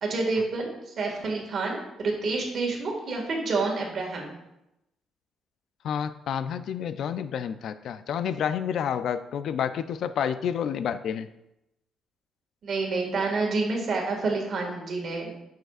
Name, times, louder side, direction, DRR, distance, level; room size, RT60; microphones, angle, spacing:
voice 1, 0.0-4.3 12.6-15.3, right 3 dB, 45° right, 0 dB, 1.9 m, -28 dB
voice 2, 5.8-11.3, left 8 dB, 60° left, 12 dB, 0.3 m, -29 dB
9.0 x 6.5 x 2.5 m, 0.89 s
cardioid pair, 150°, 0 cm